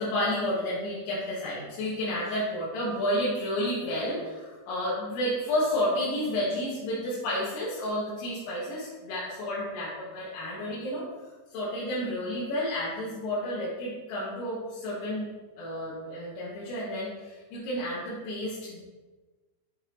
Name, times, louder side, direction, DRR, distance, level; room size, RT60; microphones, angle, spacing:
voice 1, 0.0-11.0 11.5-15.3 15.6-18.8, left 1 dB, 85° left, -9 dB, 3.8 m, -31 dB
8.9 x 4.8 x 3.0 m, 1.3 s
omnidirectional pair, 5.1 m